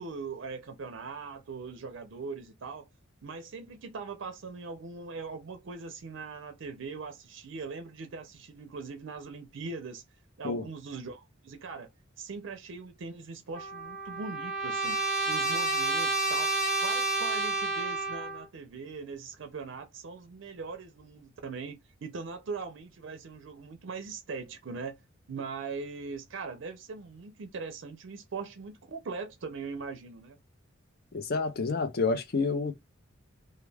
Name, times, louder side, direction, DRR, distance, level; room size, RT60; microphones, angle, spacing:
voice 1, 0.0-2.9 3.2-10.0 10.4-11.9 12.2-15.0 15.3-25.0 25.3-30.4, right 4 dB, 65° right, 0.5 m, -41 dB
Trumpet, 13.5-18.4, right 3 dB, ahead, 0.7 m, -30 dB
voice 2, 31.1-32.7, left 4 dB, 50° left, 0.5 m, -29 dB
2.2 x 2.2 x 3.2 m
head